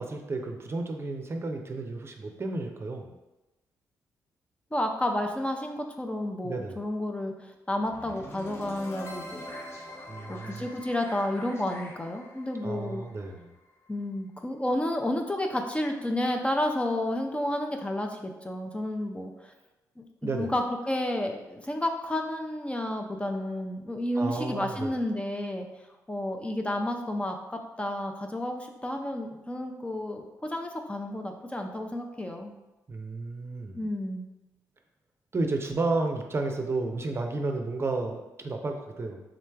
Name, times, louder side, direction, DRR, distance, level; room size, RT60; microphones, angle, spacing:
voice 1, 0.0-3.1 6.4-6.8 10.1-10.7 12.6-13.5 20.2-20.5 24.2-25.0 32.9-33.9 35.3-39.2, right 3 dB, 35° right, 4 dB, 0.6 m, -32 dB
voice 2, 4.7-9.5 10.3-13.0 13.9-19.5 20.0-25.7 26.1-32.5 33.8-34.3, left 1 dB, 15° left, 3 dB, 0.5 m, -31 dB
sound 1, 7.9-13.9, left 1 dB, 35° left, 0.8 m, -44 dB
3.8 x 3.1 x 3.4 m, 1.0 s
supercardioid pair, 55°, 7 cm